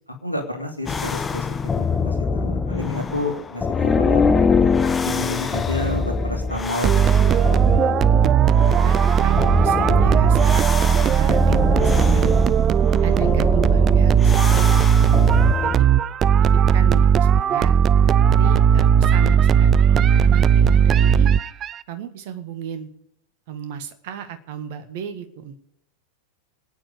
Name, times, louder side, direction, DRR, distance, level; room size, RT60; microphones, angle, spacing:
voice 1, 0.2-1.5 1.8-4.2 5.0-7.5 13.0-13.2, left 1 dB, 85° right, 3 dB, 2.9 m, -30 dB
sound 1, 0.9-15.8, left 5 dB, 15° left, 1.1 m, -24 dB
sound 2, 6.8-21.8, right 8 dB, 30° right, 0.5 m, -17 dB
voice 2, 8.2-8.5 8.8-12.4 13.0-15.3 15.6-15.9 16.4-17.7 18.4-21.3 21.9-22.9 23.5-25.6, right 8 dB, 50° right, 10 dB, 1.7 m, -34 dB
25.5 x 9.2 x 5.2 m, 0.74 s
figure-of-eight pair, 90°, 0 cm